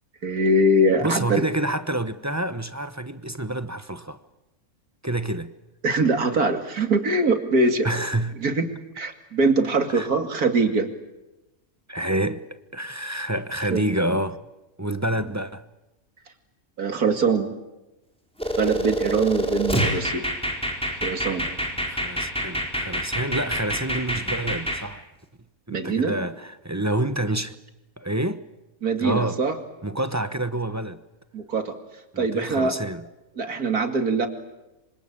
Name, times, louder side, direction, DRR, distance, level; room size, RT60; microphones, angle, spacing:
voice 1, 0.2-1.4 5.8-7.9 8.4-8.7 9.0-10.9 13.7-13.9 16.8-17.5 18.6-20.2 21.0-21.4 25.7-26.1 28.8-29.5 31.3-31.7 32.2-32.7 33.4-34.3, right 2 dB, 85° right, 2.9 m, -22 dB
voice 2, 1.0-4.2 5.0-5.5 7.8-8.4 9.9-10.1 11.9-12.4 12.7-14.4 14.8-15.6 21.8-25.0 25.7-27.5 28.0-28.4 29.0-29.4 29.8-31.0 32.1-33.1, right 1 dB, 15° right, 0.8 m, -28 dB
sound 1, 18.4-24.8, right 1 dB, 5° left, 4.2 m, -27 dB
26.5 x 25.5 x 8.8 m
omnidirectional pair, 1.5 m